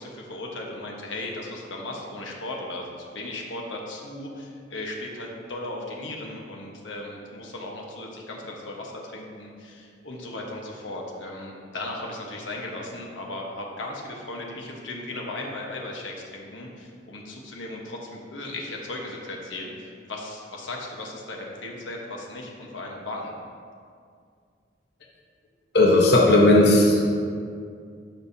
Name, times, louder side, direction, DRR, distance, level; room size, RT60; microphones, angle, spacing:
voice 1, 0.0-23.3, left 2 dB, 85° left, -1 dB, 1.2 m, -36 dB
voice 2, 25.7-27.1, left 1 dB, 60° left, -2 dB, 0.9 m, -16 dB
13.0 x 5.5 x 2.8 m, 2.3 s
head